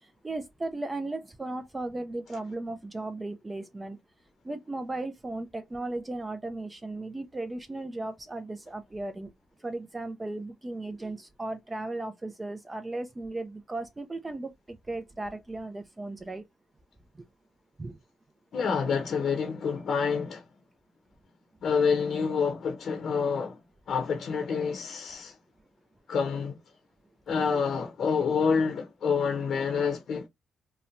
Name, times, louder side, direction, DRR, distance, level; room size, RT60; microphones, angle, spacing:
voice 1, 0.0-4.0 4.4-9.3 9.6-16.5 17.2-17.3 17.8-18.0, right 2 dB, 20° right, 0.3 m, -36 dB
voice 2, 18.5-20.4 21.6-23.6 23.9-25.4 26.1-26.6 27.3-30.3, left 5 dB, 60° left, 0.7 m, -27 dB
2.9 x 2.1 x 2.4 m
cardioid pair, 90°, 0 cm